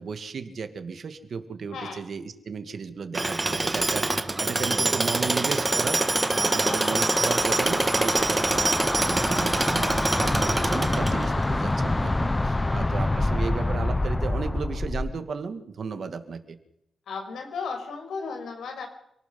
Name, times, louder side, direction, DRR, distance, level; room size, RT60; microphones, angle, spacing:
voice 1, 0.0-6.0 6.3-9.9 10.1-16.6, right 5 dB, 55° right, 8 dB, 2.2 m, -34 dB
Tools, 3.1-11.4, right 2 dB, 20° right, 1.6 m, -25 dB
sound 1, 5.5-15.2, left 2 dB, 15° left, 0.9 m, -27 dB
voice 2, 6.6-7.0 10.1-10.5 12.5-12.7 17.1-18.9, left 4 dB, 85° left, 4 dB, 5.8 m, -35 dB
27.5 x 18.5 x 5.6 m, 0.78 s
wide cardioid pair, 120°, 0 cm